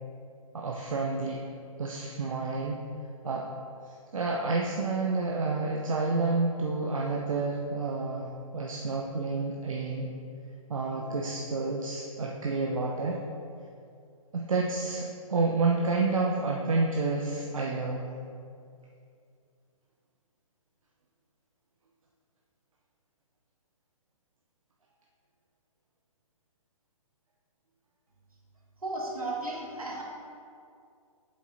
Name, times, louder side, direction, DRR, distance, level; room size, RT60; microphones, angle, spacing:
voice 1, 0.5-1.4 1.8-2.8 3.2-3.4 3.9-10.1 10.7-13.2 14.3-18.1, right 3 dB, 65° right, -1 dB, 0.7 m, -29 dB
voice 2, 28.8-30.0, right 2 dB, 80° right, -2 dB, 1.8 m, -34 dB
8.2 x 7.4 x 2.7 m, 2.4 s
figure-of-eight pair, 125°, 18 cm